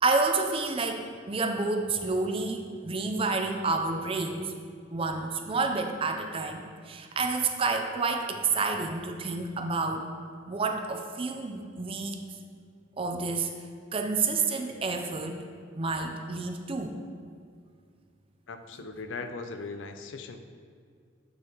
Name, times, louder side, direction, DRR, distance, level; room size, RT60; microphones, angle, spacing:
voice 1, 0.0-4.5 4.9-10.0 10.5-12.2 13.0-13.5 13.9-15.4 15.7-17.0 18.8-18.9, right 3 dB, 30° right, 5 dB, 0.5 m, -29 dB
voice 2, 18.5-20.4, left 3 dB, 70° left, 7 dB, 0.5 m, -39 dB
8.0 x 6.2 x 2.9 m, 2.1 s
head